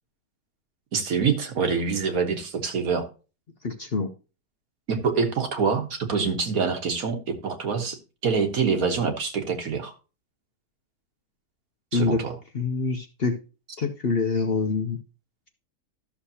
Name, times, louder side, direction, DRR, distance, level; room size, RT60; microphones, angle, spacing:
voice 1, 0.9-3.1 4.9-9.9 11.9-12.3, right 5 dB, 65° right, 5 dB, 1.7 m, -25 dB
voice 2, 3.6-4.1 11.9-12.2 12.5-13.4 13.8-15.0, left 4 dB, 45° left, 5 dB, 0.8 m, -25 dB
13.0 x 6.6 x 2.8 m, 0.32 s
omnidirectional pair, 1.7 m